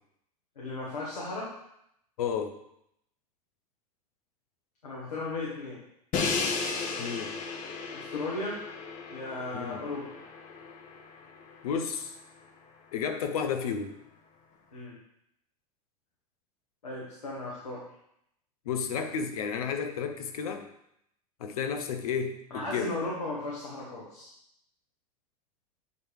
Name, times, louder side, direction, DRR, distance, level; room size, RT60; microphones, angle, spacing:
voice 1, 0.6-1.5 4.8-5.8 7.9-8.6 9.1-10.1 14.7-15.0 16.8-17.8 22.5-24.3, left 2 dB, 85° left, -5 dB, 1.7 m, -36 dB
voice 2, 2.2-2.5 7.0-7.3 9.5-9.8 11.6-12.1 12.9-13.9 18.7-20.7 21.4-22.9, left 6 dB, 70° left, 7 dB, 0.9 m, -32 dB
Crash cymbal, 6.1-12.1, left 4 dB, 40° left, 1.1 m, -35 dB
8.2 x 3.3 x 4.7 m, 0.76 s
hypercardioid pair, 90°, 20 cm